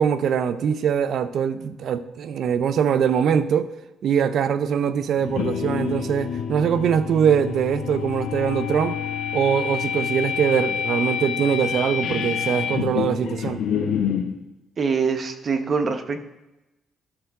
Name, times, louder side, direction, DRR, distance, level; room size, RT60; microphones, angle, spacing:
voice 1, 0.0-3.7 4.0-9.0 9.3-13.6, right 7 dB, 65° right, 0.6 m, -22 dB
sound 1, 5.2-14.3, left 7 dB, 80° left, 1.0 m, -27 dB
voice 2, 14.8-16.2, right 5 dB, 45° right, 0.9 m, -24 dB
12.5 x 4.7 x 4.8 m
cardioid pair, 90°, 0 cm